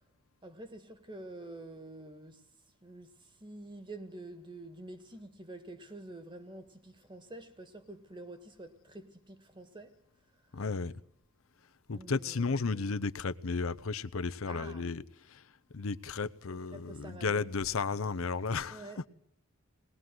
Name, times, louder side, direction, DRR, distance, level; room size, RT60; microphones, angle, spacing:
voice 1, 0.4-2.4 2.8-3.1 3.4-10.0 11.9-12.9 14.4-14.9 16.5-17.5 18.7-19.0, right 2 dB, 25° right, 1.6 m, -48 dB
voice 2, 10.5-10.9 11.9-15.0 15.3-15.4 15.7-19.1, left 4 dB, 80° left, 0.8 m, -33 dB
20.0 x 20.0 x 7.7 m
head